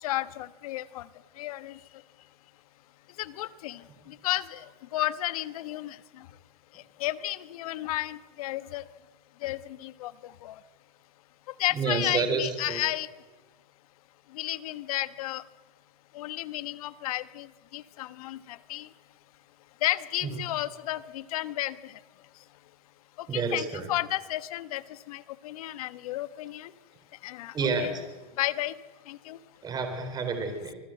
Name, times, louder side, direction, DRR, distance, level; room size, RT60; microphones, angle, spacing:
voice 1, 0.0-1.1 1.4-1.8 3.2-3.8 4.1-6.3 7.0-8.8 9.4-10.6 11.6-13.1 14.3-15.4 16.1-18.9 19.8-21.9 23.2-26.7 27.2-27.9 28.4-28.7 29.1-29.4, left 15 dB, 65° left, 14 dB, 1.3 m, -33 dB
voice 2, 11.7-12.8 20.3-20.4 23.3-23.9 27.5-28.0 29.6-30.7, right 4 dB, 20° right, 7 dB, 4.1 m, -29 dB
26.0 x 21.5 x 7.8 m, 1.3 s
supercardioid pair, 140°, 20 cm